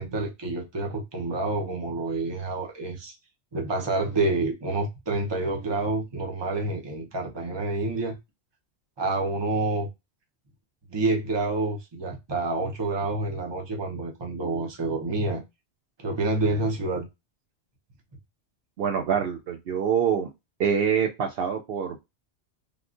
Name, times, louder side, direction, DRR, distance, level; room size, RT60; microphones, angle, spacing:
voice 1, 0.0-3.2 3.5-8.1 9.0-9.9 10.9-15.4 16.0-17.1, right 2 dB, 25° right, 0.7 m, -28 dB
voice 2, 18.8-20.3 20.6-22.0, right 7 dB, 65° right, 0.7 m, -25 dB
3.5 x 2.3 x 2.4 m
omnidirectional pair, 1.2 m